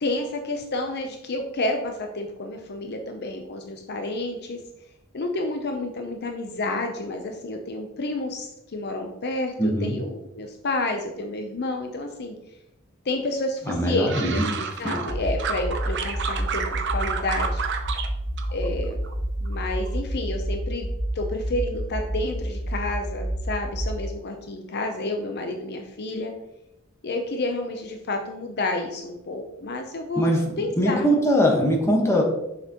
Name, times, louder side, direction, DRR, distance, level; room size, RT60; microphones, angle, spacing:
voice 1, 0.0-4.6 5.1-12.3 13.1-17.6 18.5-19.0 19.4-20.9 21.1-26.3 27.0-31.1, left 2 dB, 50° left, 4 dB, 0.6 m, -30 dB
voice 2, 9.6-9.9 13.7-14.5 30.1-30.4 30.8-32.2, equal, 15° left, -1 dB, 1.3 m, -21 dB
sound 1, 13.7-15.1 15.4-18.1 18.4-19.1 19.5-19.9, right 6 dB, 55° right, 0.7 m, -30 dB
sound 2, 15.1-24.0, right 1 dB, 20° right, 1.1 m, -29 dB
6.7 x 5.8 x 3.0 m, 0.88 s
head